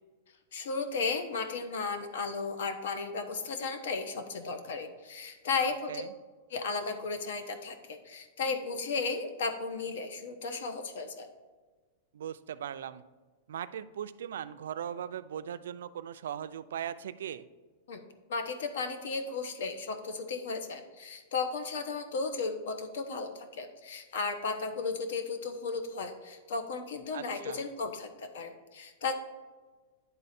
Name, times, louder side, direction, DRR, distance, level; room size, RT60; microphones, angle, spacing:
voice 1, 0.5-6.0 6.5-11.3 17.9-18.0 18.3-29.1, left 4 dB, 75° left, 7 dB, 0.9 m, -35 dB
voice 2, 12.1-13.0 13.5-17.4 27.1-27.7, right 9 dB, 85° right, 13 dB, 0.4 m, -39 dB
10.0 x 3.9 x 4.3 m, 1.3 s
supercardioid pair, 165°, 0 cm